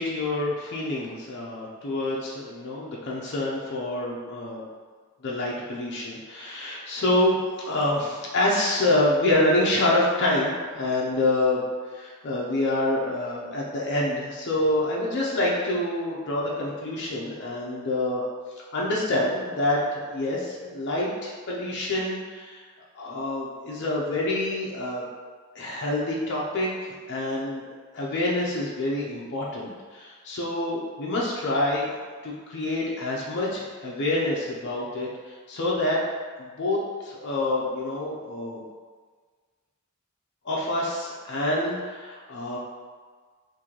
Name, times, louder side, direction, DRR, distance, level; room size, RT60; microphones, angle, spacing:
voice 1, 0.0-4.6 5.2-11.6 11.9-18.3 18.7-22.6 23.0-25.0 25.5-27.7 27.9-32.0 32.2-36.0 36.4-38.6 40.4-42.6, left 1 dB, 55° left, -4 dB, 0.5 m, -27 dB
3.0 x 2.6 x 3.8 m, 1.5 s
head